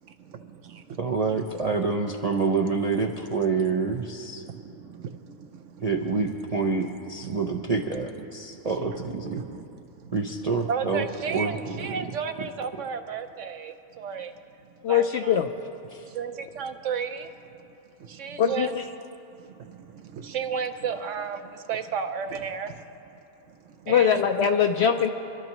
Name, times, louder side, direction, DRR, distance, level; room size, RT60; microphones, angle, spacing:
voice 1, 0.0-1.0 1.3-1.4 3.6-4.0 4.5-6.4 6.7-6.9 7.2-7.8 8.5-14.3 14.9-15.4 16.0-17.6 18.0-18.7 19.3-23.2 23.5-24.2, right 6 dB, 65° right, 8 dB, 0.9 m, -35 dB
voice 2, 1.0-4.4 5.8-9.4 10.1-11.0 11.3-11.5 15.9-16.0, right 4 dB, 45° right, 0 dB, 0.5 m, -27 dB
voice 3, 14.8-15.5 18.4-18.8 23.9-25.1, left 8 dB, 65° left, 6 dB, 0.7 m, -22 dB
26.5 x 12.0 x 3.0 m, 3.0 s
omnidirectional pair, 1.5 m